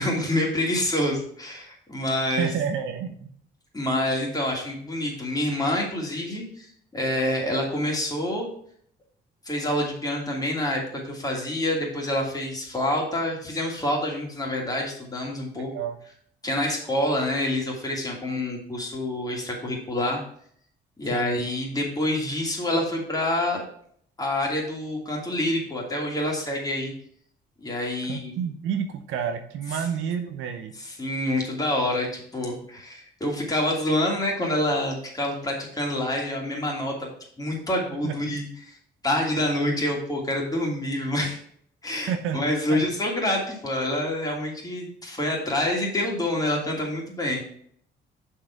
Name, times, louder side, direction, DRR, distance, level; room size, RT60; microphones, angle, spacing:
voice 1, 0.0-2.5 3.7-6.7 6.9-8.5 9.4-15.7 16.4-20.2 21.0-23.6 24.2-26.9 27.6-28.3 30.8-37.1 37.4-38.8 39.0-41.4 41.8-47.4, left 1 dB, 20° left, -1 dB, 2.8 m, -27 dB
voice 2, 2.4-3.3 15.5-16.0 21.1-21.5 28.1-30.7 38.0-38.1 42.1-42.4 42.7-42.9, right 7 dB, 90° right, 7 dB, 0.8 m, -29 dB
6.3 x 4.7 x 5.8 m, 0.62 s
cardioid pair, 90°, 20 cm